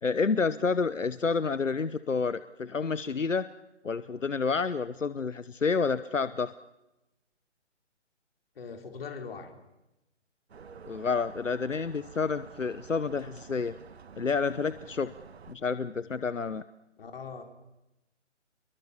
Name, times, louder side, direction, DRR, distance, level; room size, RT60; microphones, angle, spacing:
voice 1, 0.0-3.5 3.8-6.5 10.9-13.7 14.2-15.1 15.5-16.6, left 5 dB, 90° left, 14 dB, 1.1 m, -29 dB
voice 2, 8.5-9.5 17.0-17.4, left 5 dB, 50° left, 5 dB, 4.9 m, -41 dB
sound 1, 10.5-15.5, right 6 dB, 60° right, 1.5 m, -49 dB
28.0 x 22.5 x 7.2 m, 0.94 s
figure-of-eight pair, 145°, 37 cm